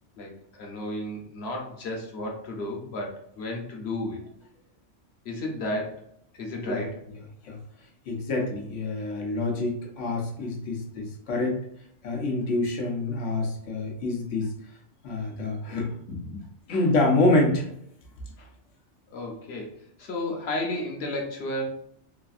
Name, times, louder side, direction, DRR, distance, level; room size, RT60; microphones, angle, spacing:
voice 1, 0.2-4.3 5.2-6.0 6.4-6.9 16.7-16.8 18.4-18.5 19.1-19.7 20.0-21.6, left 1 dB, 60° left, 1 dB, 1.0 m, -33 dB
voice 2, 8.1-11.6 12.0-14.5 15.0-16.4 16.7-17.7, left 2 dB, 85° left, 1 dB, 1.1 m, -26 dB
3.4 x 2.5 x 2.4 m, 0.70 s
omnidirectional pair, 1.2 m